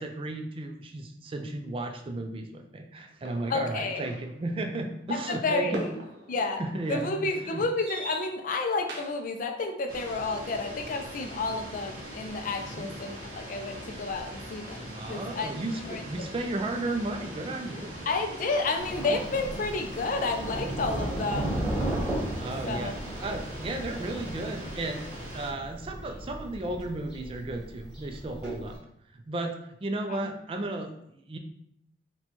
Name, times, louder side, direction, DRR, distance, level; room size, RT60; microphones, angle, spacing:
voice 1, 0.0-5.8 6.6-7.6 12.7-12.9 15.0-18.0 21.0-21.2 22.4-22.9 23.2-28.8 29.1-31.4, right 2 dB, 30° right, 5 dB, 0.3 m, -34 dB
sound 1, 3.3-9.3, right 2 dB, 75° right, 0.8 m, -42 dB
voice 2, 3.5-4.0 5.1-5.9 6.3-6.6 6.9-15.5 15.9-16.3 18.1-21.5 22.7-22.9 30.1-30.3, left 3 dB, 50° left, 5 dB, 0.4 m, -31 dB
sound 2, 9.9-25.5, equal, 50° right, 1.1 m, -42 dB
Thunder, 18.8-28.8, right 1 dB, 5° right, 1.5 m, -35 dB
4.2 x 2.2 x 2.8 m, 0.75 s
head